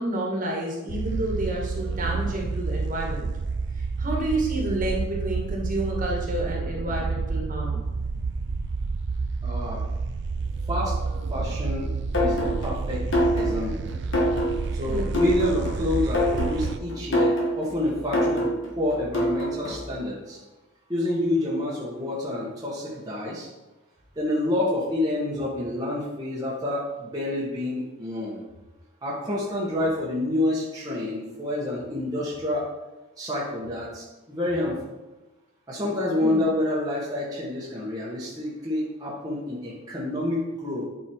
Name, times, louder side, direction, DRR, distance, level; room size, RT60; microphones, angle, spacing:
voice 1, 0.0-3.3 3.8-7.9 14.9-15.2 36.2-36.5, right 1 dB, 40° right, -2 dB, 2.0 m, -29 dB
sound 1, 0.9-16.8, right 4 dB, 55° right, 0.4 m, -29 dB
voice 2, 9.4-9.8 10.7-10.9 11.3-11.9 12.1-13.1 13.3-13.9 14.7-20.4 20.9-23.5 24.1-28.4 29.0-32.7 33.2-34.9 35.7-40.8, left 1 dB, 20° right, -6 dB, 1.6 m, -28 dB
sound 2, 12.1-20.0, equal, 65° left, 2.3 m, -26 dB
9.7 x 5.5 x 4.6 m, 1.1 s
head